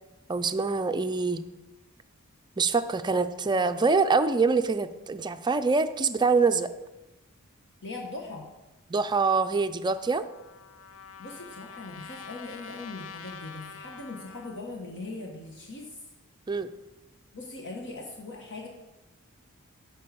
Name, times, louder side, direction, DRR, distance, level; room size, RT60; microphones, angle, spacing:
voice 1, 0.3-1.4 2.6-6.7 8.9-10.2 16.5-16.7, right 4 dB, 20° right, 9 dB, 0.4 m, -25 dB
voice 2, 7.8-8.5 11.2-15.9 17.3-18.7, left 2 dB, 55° left, 0 dB, 1.3 m, -40 dB
Trumpet, 9.9-14.6, left 6 dB, 75° left, 0.8 m, -46 dB
11.0 x 4.7 x 6.9 m, 1.0 s
head